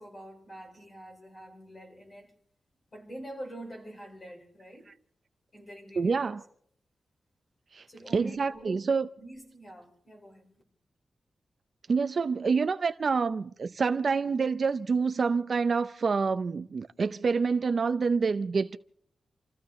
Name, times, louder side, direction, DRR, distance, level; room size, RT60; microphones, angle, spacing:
voice 1, 0.0-2.3 2.9-4.9 5.5-6.3 7.9-8.8 9.2-10.5, right 1 dB, 30° left, 5.2 m, -45 dB
voice 2, 6.0-6.4 7.7-7.8 8.1-9.1 11.9-18.8, right 5 dB, 45° right, 0.6 m, -27 dB
29.0 x 15.0 x 3.2 m
wide cardioid pair, 175°, 0 cm